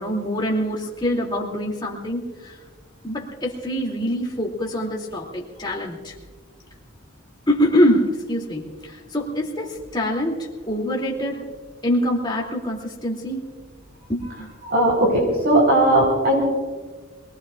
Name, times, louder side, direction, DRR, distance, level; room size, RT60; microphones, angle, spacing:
voice 1, 0.0-2.6 3.0-6.1 7.5-11.4 11.8-13.4 14.1-14.5, equal, 20° left, -2 dB, 2.8 m, -24 dB
voice 2, 14.6-16.4, right 1 dB, 50° right, -2 dB, 4.5 m, -18 dB
27.0 x 20.0 x 2.5 m, 1.4 s
head